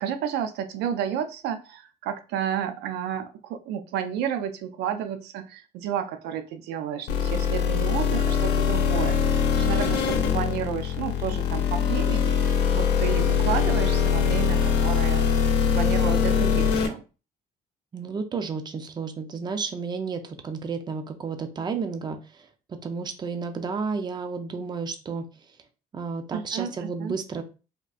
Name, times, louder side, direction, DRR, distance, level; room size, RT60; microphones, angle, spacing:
voice 1, 0.0-15.3 15.6-17.0 26.3-26.7 27.0-27.1, right 9 dB, 80° right, 9 dB, 0.4 m, -31 dB
sound 1, 7.1-16.9, left 7 dB, 80° left, 0.8 m, -23 dB
voice 2, 17.9-22.2 22.7-25.2 25.9-27.4, right 5 dB, 25° right, 7 dB, 0.4 m, -32 dB
3.5 x 2.4 x 2.4 m, 0.33 s
cardioid pair, 110°, 17 cm